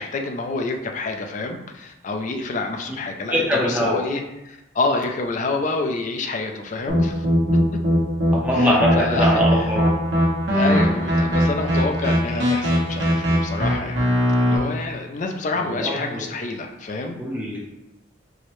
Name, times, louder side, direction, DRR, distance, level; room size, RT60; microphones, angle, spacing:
voice 1, 0.0-7.3 8.5-9.7 10.5-14.0 14.4-17.2, left 3 dB, 40° left, 4 dB, 0.4 m, -28 dB
voice 2, 3.3-4.0 8.3-9.9 15.6-16.2 17.2-17.6, equal, 10° right, -4 dB, 0.6 m, -23 dB
sound 1, 6.9-14.6, equal, 90° right, 1.0 m, -20 dB
4.5 x 2.1 x 3.0 m, 0.94 s
head